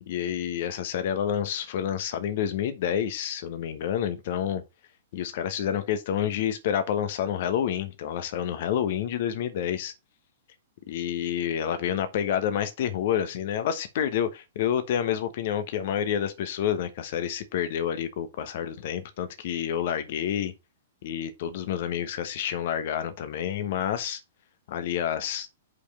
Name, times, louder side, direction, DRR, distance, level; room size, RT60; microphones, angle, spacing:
voice 1, 0.1-4.6 5.1-9.9 10.9-20.5 21.0-24.2 24.7-25.5, left 9 dB, 50° left, 1.1 m, -28 dB
5.5 x 4.9 x 5.2 m
figure-of-eight pair, 110°, 0 cm